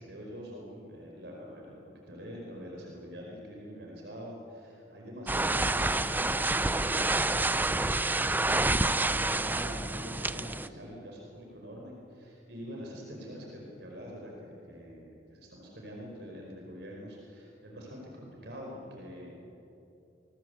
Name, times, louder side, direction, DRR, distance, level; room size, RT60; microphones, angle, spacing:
voice 1, 0.0-1.8 2.1-7.5 8.3-19.4, equal, 70° right, -1 dB, 5.1 m, -45 dB
sound 1, 5.3-10.7, right 2 dB, 10° right, 0.6 m, -28 dB
29.0 x 21.5 x 8.2 m, 2.8 s
head